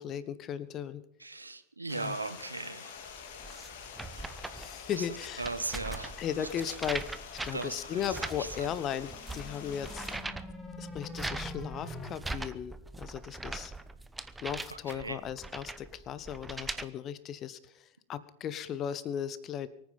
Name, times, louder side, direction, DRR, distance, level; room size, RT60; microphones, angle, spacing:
voice 1, 0.0-1.0 1.9-2.2 4.5-5.4 6.2-10.1 10.8-13.7 14.4-19.7, left 9 dB, 30° left, 16 dB, 1.2 m, -37 dB
voice 2, 1.2-3.3 5.0-5.1 5.4-6.7 7.5-8.8 14.7-15.2, right 3 dB, 80° right, 11 dB, 1.3 m, -39 dB
Stream, 1.9-10.2, left 7 dB, 50° left, 2.2 m, -47 dB
sound 1, 3.1-16.8, right 2 dB, 10° right, 0.9 m, -41 dB
sound 2, 8.9-12.1, left 1 dB, 10° left, 2.2 m, -44 dB
24.0 x 9.5 x 5.5 m, 0.77 s
figure-of-eight pair, 90°, 0 cm